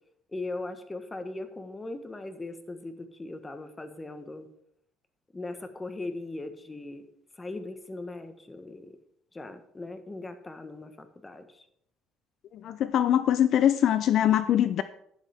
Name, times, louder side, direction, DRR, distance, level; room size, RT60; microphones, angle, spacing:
voice 1, 0.3-4.5 5.3-7.0 7.4-8.9 9.3-11.6, left 2 dB, 15° left, 9 dB, 1.2 m, -39 dB
voice 2, 12.5-14.8, left 10 dB, 55° left, 13 dB, 0.5 m, -23 dB
12.0 x 10.5 x 3.5 m, 0.72 s
cardioid pair, 115°, 0 cm